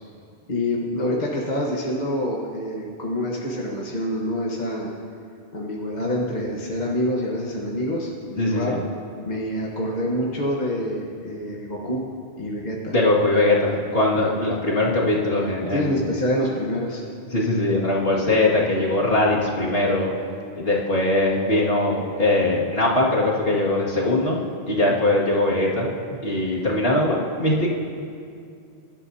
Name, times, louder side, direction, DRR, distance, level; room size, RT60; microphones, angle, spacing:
voice 1, 0.5-4.9 5.5-8.8 9.2-12.0 12.4-12.9 14.1-14.4 15.7-17.0 24.7-24.9, left 1 dB, 45° left, -3 dB, 1.3 m, -26 dB
voice 2, 8.4-8.8 12.9-15.9 17.3-20.1 20.6-24.4 24.7-25.9 26.2-27.7, left 2 dB, 60° left, -5 dB, 2.3 m, -21 dB
24.0 x 12.0 x 2.8 m, 2.5 s
omnidirectional pair, 1.1 m